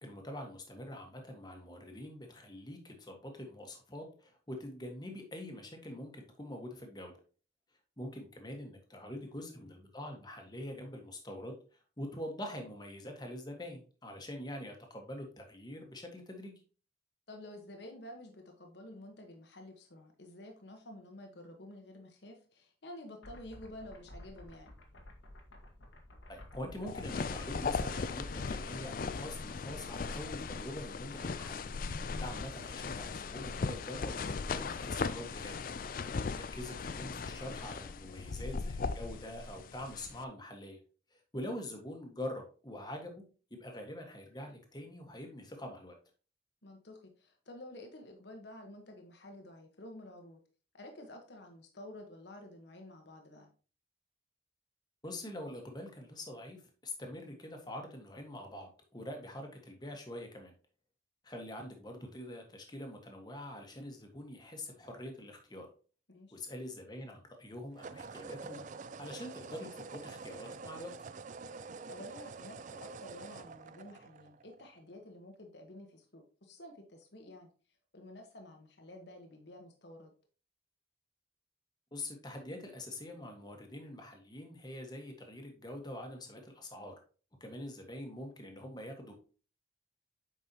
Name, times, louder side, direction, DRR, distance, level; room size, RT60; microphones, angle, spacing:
voice 1, 0.0-7.1 8.0-16.5 26.3-31.6 32.2-35.6 36.3-40.8 41.1-43.2 43.5-46.0 55.0-60.5 61.2-65.7 66.3-70.9 81.9-86.9 87.4-89.1, left 1 dB, 20° left, 3 dB, 1.4 m, -45 dB
voice 2, 9.2-9.7 17.3-24.7 38.0-38.5 46.6-50.4 50.7-53.5 66.1-66.4 71.9-77.5 77.9-80.1, left 1 dB, 65° left, 3 dB, 1.2 m, -51 dB
sound 1, 23.2-28.6, left 1 dB, 80° left, 1.6 m, -51 dB
sound 2, 26.9-40.2, left 4 dB, 45° left, 0.4 m, -38 dB
sound 3, 63.6-63.8 67.7-74.8, right 4 dB, 40° right, 0.4 m, -47 dB
8.2 x 5.4 x 2.9 m, 0.37 s
head